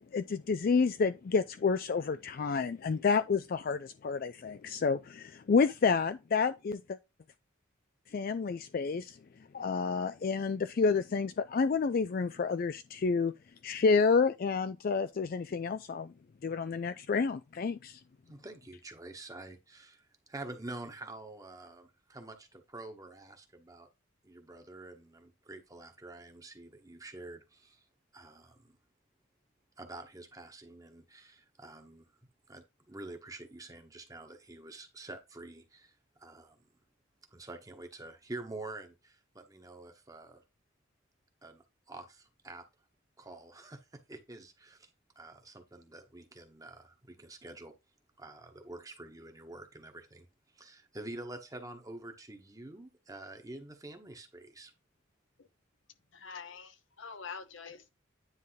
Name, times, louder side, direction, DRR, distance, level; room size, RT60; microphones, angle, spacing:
voice 1, 0.1-7.0 8.1-9.2 9.5-13.3 13.6-16.1 16.4-18.0, left 5 dB, 45° left, 0.4 m, -29 dB
voice 2, 18.3-23.9 24.2-27.8 28.1-28.8 29.8-32.1 32.5-36.6 37.3-40.4 41.4-42.7 43.2-44.9 45.1-47.7 48.2-50.3 50.5-54.7, right 2 dB, 15° right, 1.2 m, -47 dB
voice 3, 56.1-57.9, left 5 dB, 70° left, 1.0 m, -45 dB
9.7 x 3.5 x 4.0 m
head